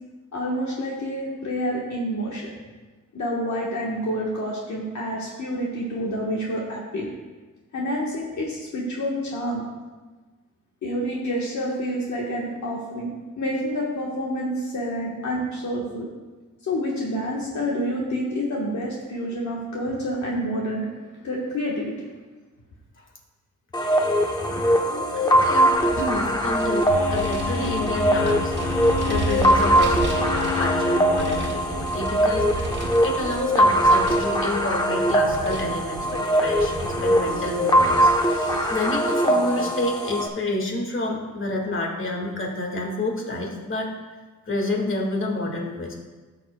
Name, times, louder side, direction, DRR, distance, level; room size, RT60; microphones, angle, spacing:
voice 1, 0.3-2.5 3.1-7.1 7.7-9.6 10.8-13.1 13.4-16.1 16.6-20.9 21.2-21.9, equal, 60° left, -3 dB, 1.4 m, -28 dB
sound 1, 23.7-40.3, equal, 15° left, 0.9 m, -21 dB
voice 2, 25.1-32.5 33.0-43.9 44.5-46.0, left 2 dB, 40° left, 1 dB, 1.9 m, -29 dB
Vehicle, 25.7-39.0, right 3 dB, 35° right, 1.8 m, -34 dB
sound 2, 26.9-32.0, left 6 dB, 80° left, 1.8 m, -30 dB
15.0 x 7.1 x 2.3 m, 1.3 s
cardioid pair, 110°, 32 cm